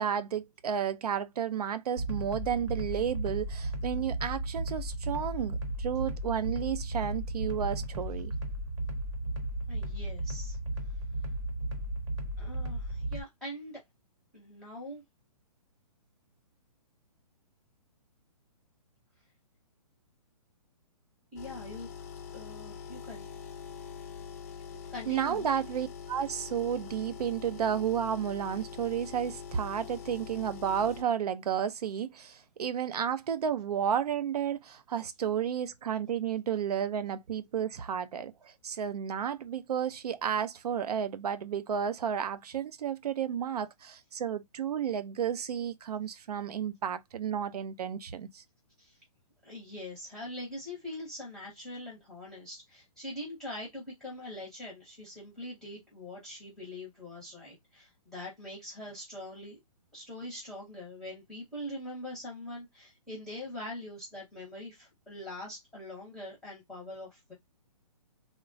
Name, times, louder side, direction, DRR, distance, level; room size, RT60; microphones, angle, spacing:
voice 1, 0.0-8.3 24.7-48.4, right 8 dB, 75° right, 0.5 m, -32 dB
sound 1, 2.0-13.2, right 1 dB, 50° right, 0.8 m, -35 dB
voice 2, 9.7-10.6 12.4-13.8 14.3-15.0 21.3-21.9 22.3-23.3 24.9-25.5 48.8-49.0 49.4-59.6 59.9-67.3, left 1 dB, 5° left, 0.7 m, -43 dB
sound 2, 21.4-31.0, left 7 dB, 25° left, 0.3 m, -44 dB
3.1 x 2.1 x 2.5 m
hypercardioid pair, 160°, 20 cm